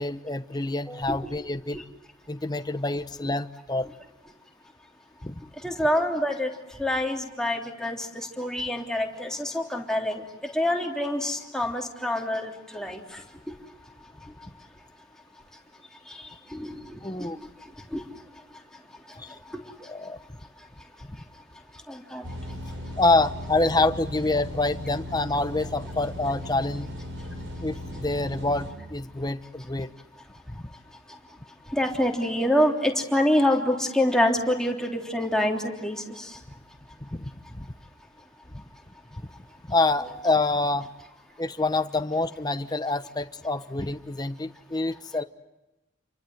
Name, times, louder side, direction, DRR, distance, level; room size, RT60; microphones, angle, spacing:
voice 1, 0.0-1.8 2.3-3.9 5.2-5.4 17.0-17.4 19.2-19.3 19.8-20.2 23.0-26.9 27.6-29.9 30.5-30.6 37.1-37.7 38.5-38.6 39.7-40.9 41.4-45.2, left 2 dB, 20° left, 11 dB, 1.0 m, -27 dB
voice 2, 0.9-1.3 1.7-1.8 5.6-6.5 6.8-13.2 16.1-17.3 17.9-18.0 19.5-19.6 21.9-22.2 31.7-36.4 40.0-40.3, left 1 dB, 5° left, 1 dB, 3.3 m, -27 dB
sound 1, 22.2-28.7, left 1 dB, 85° right, 5.2 m, -37 dB
29.5 x 24.0 x 7.9 m, 0.98 s
head